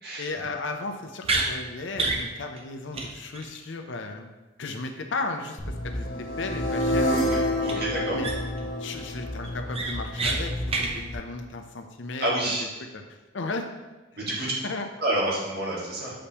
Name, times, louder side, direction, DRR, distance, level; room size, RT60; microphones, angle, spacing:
voice 1, 0.2-4.3 4.6-7.4 8.1-8.3 8.8-10.5 10.8-12.5 12.9-13.0 13.3-13.7 14.4-14.9, left 3 dB, 75° left, 5 dB, 0.6 m, -35 dB
sound 1, 1.2-1.5 2.0-2.2 2.6-2.7 2.9-3.1 3.3-3.5 7.6-7.7 8.2-8.6 9.0-9.1 9.4-10.4 10.7-10.9, right 3 dB, 30° right, 0.6 m, -27 dB
sound 2, 5.6-11.1, left 1 dB, 25° left, 0.8 m, -35 dB
sound 3, 6.0-10.0, equal, 50° left, 1.8 m, -28 dB
voice 2, 7.1-8.2 12.2-12.7 14.1-14.5 15.0-16.1, right 1 dB, 55° right, -5 dB, 1.8 m, -29 dB
6.7 x 5.1 x 2.9 m, 1.1 s
head